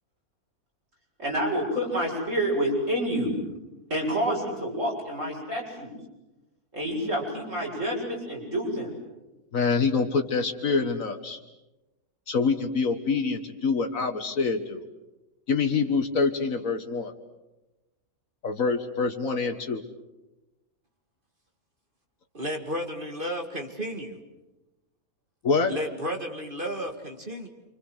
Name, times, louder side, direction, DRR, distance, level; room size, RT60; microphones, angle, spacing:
voice 1, 1.2-3.3 3.9-5.9 6.7-8.9, equal, 60° right, -3 dB, 8.2 m, -28 dB
voice 2, 9.5-11.4 12.3-14.8 15.5-17.1 18.4-19.8 25.4-25.7, left 4 dB, 65° left, 6 dB, 1.8 m, -26 dB
voice 3, 22.3-24.2 25.7-27.5, equal, 35° right, 3 dB, 2.4 m, -33 dB
28.5 x 26.0 x 8.0 m, 1.0 s
omnidirectional pair, 1.5 m